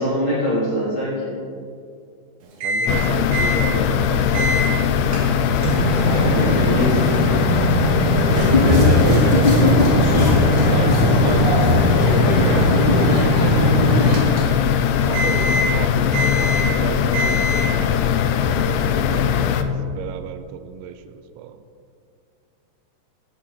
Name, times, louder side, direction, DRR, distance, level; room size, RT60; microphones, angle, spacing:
voice 1, 0.0-1.3 6.0-7.1, equal, 30° left, -8 dB, 3.4 m, -23 dB
Microwave oven, 2.6-3.0 3.3-3.6 4.3-4.7 5.1-14.8 15.1-15.8 16.1-16.8 17.1-17.8, right 1 dB, 55° right, 3.2 m, -22 dB
voice 2, 2.6-4.9 6.1-6.8 8.6-11.6 12.2-14.2 15.0-17.8 18.6-21.0 21.4-21.6, right 8 dB, 85° right, 9 dB, 2.8 m, -32 dB
sound 1, 2.9-19.6, left 8 dB, 85° left, 2.8 m, -20 dB
sound 2, 8.2-14.2, left 2 dB, 15° left, 2.8 m, -19 dB
17.5 x 8.4 x 4.2 m, 2.3 s
omnidirectional pair, 5.4 m